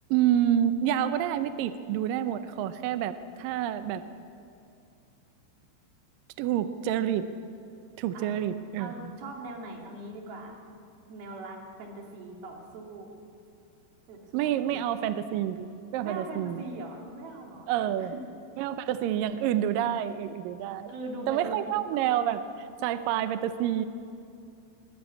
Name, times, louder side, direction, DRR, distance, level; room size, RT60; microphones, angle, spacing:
voice 1, 0.1-4.0 6.4-7.3 8.0-8.9 14.3-16.6 17.7-18.1 18.6-20.9 21.3-23.9, right 10 dB, 80° right, 11 dB, 2.0 m, -28 dB
voice 2, 8.8-10.8 11.1-13.1 14.1-14.8 16.0-18.1 20.9-21.7, right 2 dB, 65° right, 1 dB, 4.3 m, -41 dB
22.0 x 20.0 x 8.5 m, 2.6 s
omnidirectional pair, 4.8 m